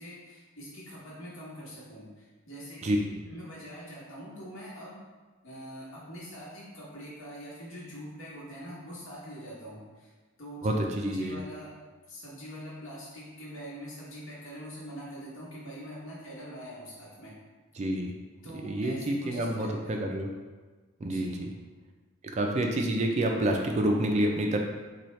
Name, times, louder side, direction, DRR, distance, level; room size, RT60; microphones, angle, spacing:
voice 1, 0.0-2.1 2.5-3.0 3.3-5.0 5.4-10.1 10.4-10.7 11.0-11.8 12.1-17.3 18.4-20.0 21.0-21.4, equal, 70° left, -5 dB, 1.1 m, -44 dB
voice 2, 10.6-11.4 17.8-18.1 18.6-20.3 21.0-21.5 22.3-24.6, right 1 dB, 35° right, 2 dB, 0.3 m, -28 dB
4.1 x 2.3 x 3.1 m, 1.4 s
head